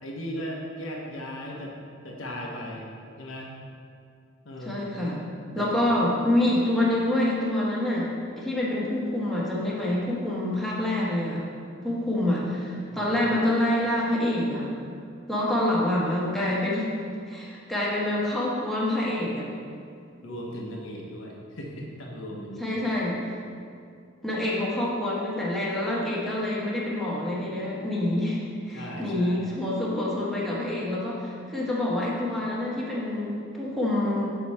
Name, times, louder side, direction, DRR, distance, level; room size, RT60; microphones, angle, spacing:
voice 1, 0.0-1.7 2.0-2.8 3.2-3.5 4.4-4.8 5.6-5.7 5.9-6.1 12.9-13.1 20.2-22.8 28.7-29.4, equal, 85° left, -2 dB, 1.0 m, -37 dB
voice 2, 4.6-5.2 5.5-8.1 8.4-11.4 11.8-14.7 15.3-16.9 17.3-19.5 22.6-23.4 24.2-28.4 28.6-34.3, left 1 dB, ahead, -7 dB, 1.2 m, -26 dB
6.8 x 4.9 x 4.2 m, 2.3 s
head